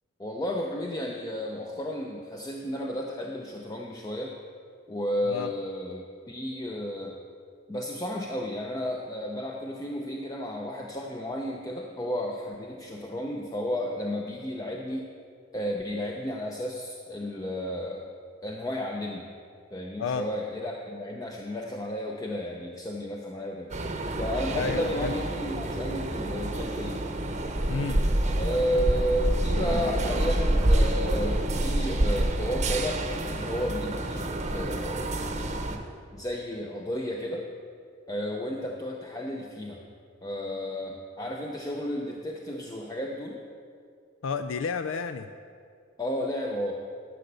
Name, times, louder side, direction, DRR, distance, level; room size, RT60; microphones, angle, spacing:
voice 1, 0.2-4.4 4.9-7.2 7.7-15.1 15.5-18.1 18.4-19.2 19.7-23.7 24.2-27.0 28.4-35.0 36.1-37.5 38.1-39.8 40.2-43.4 46.0-46.8, equal, 20° left, 0 dB, 0.6 m, -32 dB
sound 1, 23.7-35.8, right 1 dB, 35° right, 0.9 m, -27 dB
voice 2, 24.5-25.2 27.7-28.0 44.2-45.3, left 5 dB, 70° left, 9 dB, 0.4 m, -31 dB
12.0 x 6.4 x 6.8 m, 2.2 s
head